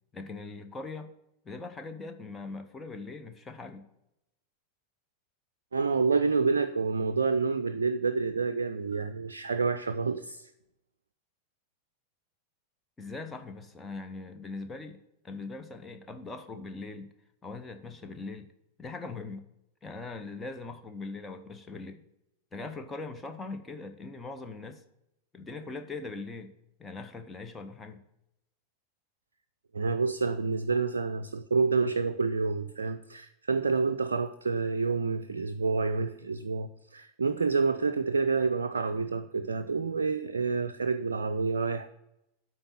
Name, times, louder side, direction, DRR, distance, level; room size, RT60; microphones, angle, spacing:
voice 1, 0.1-1.1 1.4-3.8 13.0-15.0 15.2-17.1 17.4-18.5 18.8-19.4 19.8-22.0 22.5-24.8 25.3-26.5 26.8-28.0, left 3 dB, 15° left, 6 dB, 0.8 m, -41 dB
voice 2, 5.7-10.5 29.7-41.9, right 4 dB, 70° right, 8 dB, 0.3 m, -28 dB
9.0 x 4.0 x 5.7 m, 0.86 s
figure-of-eight pair, 90°, 0 cm